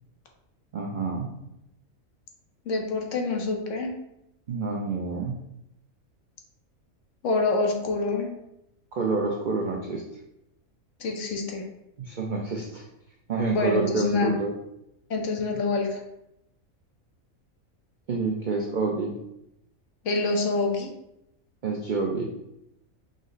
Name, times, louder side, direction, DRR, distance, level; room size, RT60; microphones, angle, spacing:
voice 1, 0.7-1.3 4.5-5.4 8.9-10.0 12.0-12.9 13.3-14.5 18.1-19.1 21.6-22.3, right 3 dB, 75° right, -1 dB, 0.4 m, -28 dB
voice 2, 2.7-3.9 7.2-8.3 11.0-11.6 13.5-14.3 15.1-16.0 20.0-20.9, left 3 dB, 65° left, 2 dB, 1.0 m, -26 dB
5.1 x 2.0 x 3.9 m, 0.83 s
omnidirectional pair, 1.5 m